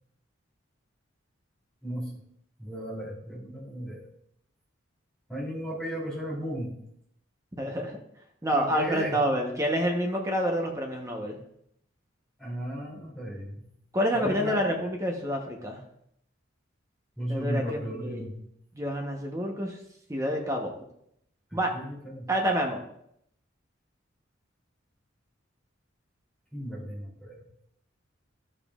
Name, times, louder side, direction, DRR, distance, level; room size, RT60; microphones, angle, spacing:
voice 1, 2.6-4.0 5.3-6.7 8.5-9.2 12.4-13.6 14.1-14.6 17.2-18.4 21.5-22.3 26.5-27.4, equal, 5° left, -5 dB, 3.0 m, -35 dB
voice 2, 7.6-7.9 8.4-11.4 13.9-15.8 17.3-18.2 18.7-19.8 20.1-20.7 21.5-21.7 22.3-22.8, equal, 15° right, 1 dB, 0.9 m, -28 dB
12.0 x 7.1 x 2.4 m, 0.72 s
head